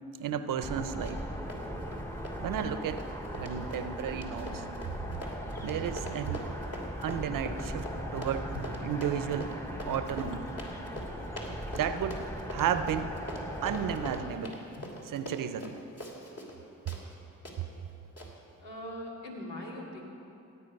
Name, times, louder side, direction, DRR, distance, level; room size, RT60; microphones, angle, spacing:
voice 1, 0.2-1.2 2.4-3.0 3.4-4.6 5.6-6.4 7.0-8.5 8.8-9.5 9.9-10.4 11.7-12.2 12.5-13.1 13.6-14.6 15.0-15.8, right 9 dB, 70° right, 11 dB, 0.7 m, -33 dB
sound 1, 0.6-14.3, equal, 10° left, 1.1 m, -39 dB
Run, 1.0-1.2 1.5-16.6 16.9-17.0 17.4-17.6 18.2-18.3, equal, 45° left, 2.9 m, -43 dB
Gurgling / Sink (filling or washing) / Liquid, 8.5-8.8 9.7-12.4 12.8-13.1 13.6-13.8 14.8-15.0, left 2 dB, 70° left, 1.5 m, -45 dB
voice 2, 18.6-20.0, left 1 dB, 85° left, -4 dB, 2.4 m, -41 dB
17.0 x 8.4 x 5.3 m, 2.8 s
supercardioid pair, 45°, 34 cm